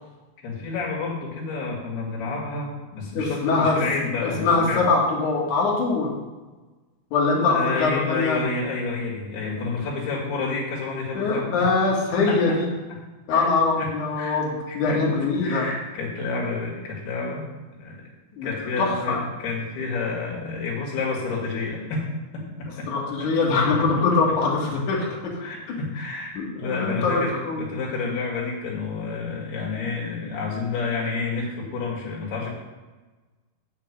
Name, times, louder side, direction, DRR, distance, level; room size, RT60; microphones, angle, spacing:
voice 1, 0.4-4.8 7.5-11.7 12.3-12.6 13.3-13.5 13.8-13.9 14.2-14.4 14.7-17.5 17.7-18.0 18.4-22.1 22.3-22.9 23.2-23.3 23.7-24.0 24.9-25.0 25.4-26.3 26.6-32.5, left 4 dB, 80° left, -3 dB, 4.0 m, -29 dB
voice 2, 3.1-3.8 4.2-6.1 7.1-8.4 11.1-12.7 13.3-15.7 18.3-19.2 22.9-25.3 26.3-27.7, left 4 dB, 55° left, -4 dB, 3.2 m, -23 dB
7.4 x 6.6 x 7.5 m, 1.2 s
omnidirectional pair, 4.5 m